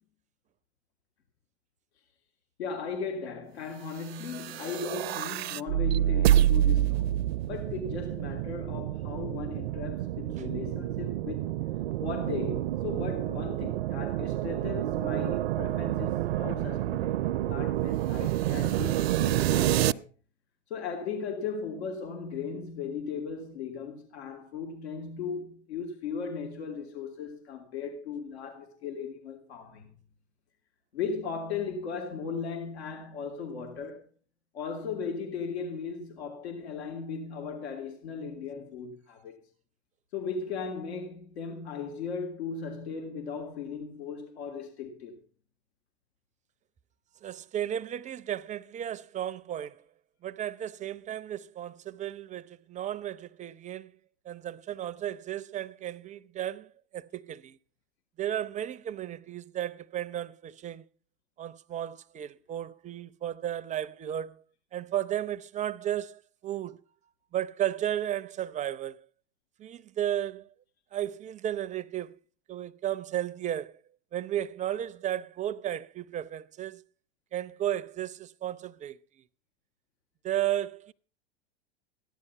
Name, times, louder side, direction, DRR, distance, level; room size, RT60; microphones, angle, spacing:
voice 1, 2.6-11.5 12.0-20.0 20.7-29.9 30.9-34.1 34.5-39.4 40.1-45.2, left 5 dB, 75° left, 3.3 m, -37 dB
sound 1, 4.2-19.9, right 13 dB, 70° right, 0.6 m, -28 dB
voice 2, 47.2-49.8 50.2-53.9 54.3-57.6 58.2-60.8 61.4-64.4 64.7-66.8 67.3-69.0 69.6-70.5 70.9-72.2 72.5-73.8 74.1-76.8 77.3-79.0 80.2-80.9, right 11 dB, 20° right, 0.6 m, -34 dB
15.0 x 11.0 x 5.7 m
hypercardioid pair, 105°, 33 cm